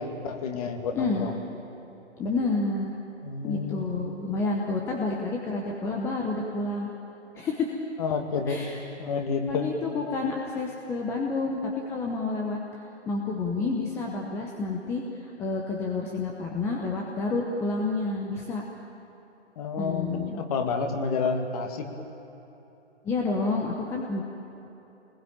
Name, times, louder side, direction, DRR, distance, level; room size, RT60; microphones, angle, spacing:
voice 1, 0.0-1.3 3.2-4.1 8.0-8.6 9.0-9.7 19.6-21.9, left 5 dB, 30° left, 4 dB, 2.2 m, -30 dB
voice 2, 1.0-1.3 2.2-2.9 3.4-6.9 7.3-7.8 8.5-8.8 9.5-12.6 13.1-18.6 19.8-20.4 23.0-24.2, left 3 dB, 5° left, 0 dB, 0.8 m, -29 dB
27.5 x 20.5 x 9.1 m, 3.0 s
figure-of-eight pair, 140°, 37 cm